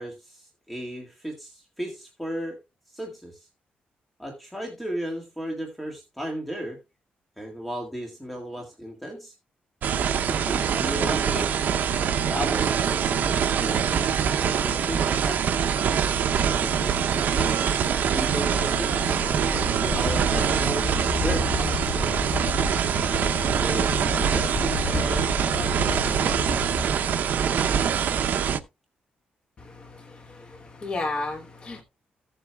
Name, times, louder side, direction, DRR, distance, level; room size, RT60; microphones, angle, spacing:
voice 1, 0.0-2.6 2.9-3.5 4.2-6.8 7.4-9.3 10.2-11.5 12.2-15.7 16.6-18.9 19.5-20.9 21.2-22.2 23.6-26.0, equal, 5° left, 1.7 m, -35 dB
sound 1, 9.8-28.6, right 7 dB, 65° right, 0.7 m, -24 dB
sound 2, 18.5-26.9, left 4 dB, 80° left, 1.0 m, -32 dB
voice 2, 29.6-31.8, left 2 dB, 30° left, 1.2 m, -34 dB
15.5 x 7.7 x 2.3 m
wide cardioid pair, 140°, 3 cm